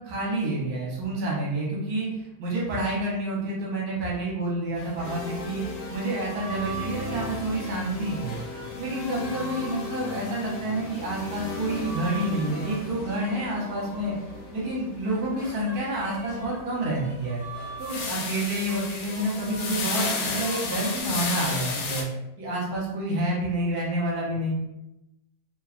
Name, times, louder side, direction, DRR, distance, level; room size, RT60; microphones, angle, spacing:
voice 1, 0.0-5.6 5.9-8.4 8.8-14.1 14.5-17.4 17.8-22.0 22.4-24.5, right 1 dB, 60° right, -4 dB, 1.3 m, -29 dB
sound 1, 4.8-22.0, left 4 dB, 90° left, 1.3 m, -35 dB
sound 2, 5.0-18.9, left 3 dB, 70° left, 0.9 m, -38 dB
sound 3, 5.6-10.5 11.0-14.8 15.1-21.0, right 4 dB, 80° right, 0.3 m, -43 dB
3.2 x 2.3 x 2.4 m, 0.89 s
omnidirectional pair, 1.9 m